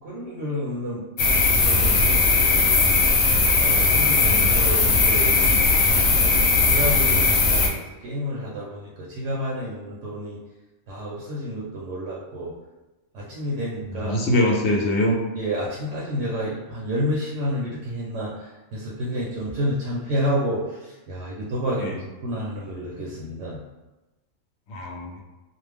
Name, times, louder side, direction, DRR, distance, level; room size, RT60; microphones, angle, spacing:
voice 1, 0.0-1.1 1.3-3.0 3.6-5.4 6.1-10.4 10.9-12.5 13.1-14.2 15.3-23.6, equal, 70° right, -5 dB, 0.9 m, -30 dB
sound 1, 1.2-7.7, left 3 dB, 85° left, 1.0 m, -18 dB
voice 2, 13.9-15.2 21.8-21.9 24.7-25.2, left 1 dB, 65° left, -1 dB, 0.8 m, -23 dB
2.5 x 2.0 x 3.3 m, 1.1 s
omnidirectional pair, 1.4 m